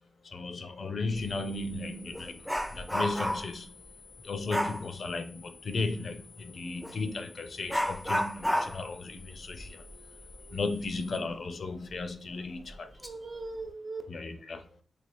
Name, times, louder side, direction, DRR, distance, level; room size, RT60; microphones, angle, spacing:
voice 1, 0.2-3.7 4.2-9.9 10.5-12.9 14.1-14.7, left 3 dB, 60° left, 0.5 m, -35 dB
Dog, 1.1-1.3 1.7-3.6 4.5-4.9 6.8-7.0 7.7-11.0 11.3-11.4 11.9-12.0 12.7-13.1 13.5-13.7, equal, ahead, 0.5 m, -32 dB
sound 1, 1.2-11.2, left 6 dB, 80° right, 0.8 m, -54 dB
voice 2, 9.9-10.6 11.7-11.8 12.3-14.0, right 3 dB, 55° right, 1.0 m, -43 dB
3.2 x 2.3 x 4.2 m
supercardioid pair, 40°, 0 cm